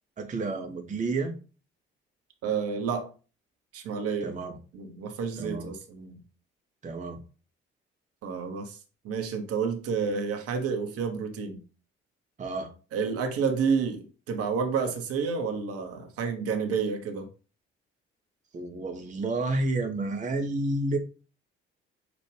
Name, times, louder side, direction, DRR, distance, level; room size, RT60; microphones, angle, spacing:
voice 1, 0.2-1.4 4.2-4.5 5.4-5.7 6.8-7.2 12.4-12.7 18.5-21.0, right 2 dB, 25° right, 0.8 m, -30 dB
voice 2, 2.4-3.1 3.7-4.3 4.7-6.2 8.2-8.8 9.0-11.6 12.9-17.3, right 6 dB, 50° right, 0.9 m, -30 dB
6.0 x 2.5 x 3.2 m
figure-of-eight pair, 45°, 31 cm